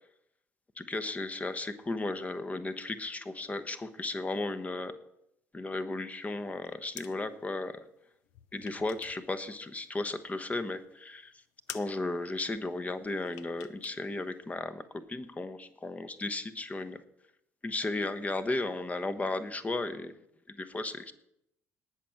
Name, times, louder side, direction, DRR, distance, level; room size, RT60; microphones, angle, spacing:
voice 1, 0.8-5.0 5.5-7.8 8.5-11.3 11.7-17.0 17.6-20.1 20.5-21.1, left 2 dB, 20° left, 11 dB, 1.0 m, -35 dB
sound 1, 6.5-7.2 8.2-9.3 9.6-10.5 10.9-11.0 11.3-11.4 11.7-12.0 13.3-14.0 14.3-14.4, left 13 dB, 60° left, 0.6 m, -47 dB
18.5 x 6.3 x 5.9 m, 0.79 s
figure-of-eight pair, 50°, 7 cm